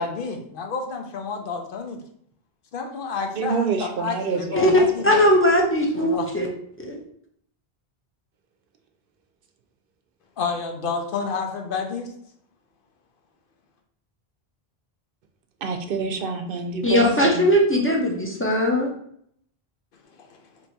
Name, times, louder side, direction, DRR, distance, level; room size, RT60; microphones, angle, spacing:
voice 1, 0.0-2.0 2.7-5.2 5.9-6.3 10.4-12.1 20.2-20.4, left 5 dB, 65° left, 3 dB, 0.7 m, -30 dB
voice 2, 3.4-5.2 15.6-17.5, right 4 dB, 65° right, 6 dB, 0.7 m, -28 dB
voice 3, 4.5-6.5 6.9-7.0 16.8-18.9, equal, 15° left, -1 dB, 0.6 m, -19 dB
3.0 x 2.7 x 4.5 m, 0.67 s
omnidirectional pair, 1.0 m